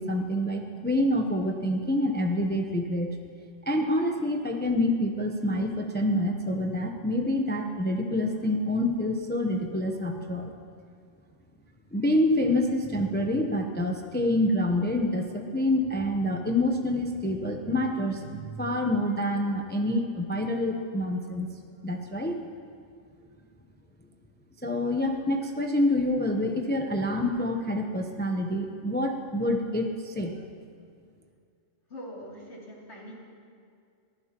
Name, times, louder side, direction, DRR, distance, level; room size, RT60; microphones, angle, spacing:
voice 1, 0.0-3.2 3.7-10.5 11.9-21.5 21.8-22.4 24.6-30.4, left 1 dB, 10° left, 3 dB, 0.6 m, -27 dB
voice 2, 31.9-33.2, equal, 65° left, -4 dB, 3.2 m, -43 dB
22.5 x 15.0 x 2.9 m, 2.3 s
omnidirectional pair, 1.3 m